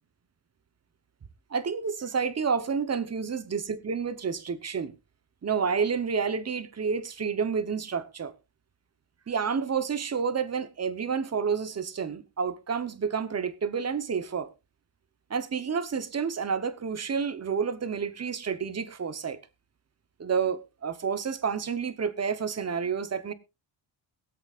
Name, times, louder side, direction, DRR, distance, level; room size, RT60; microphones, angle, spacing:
voice 1, 1.5-4.9 5.4-8.3 9.3-14.5 15.3-19.4 20.2-23.3, right 6 dB, 35° right, 0.9 m, -29 dB
22.0 x 8.0 x 2.4 m
wide cardioid pair, 130°, 47 cm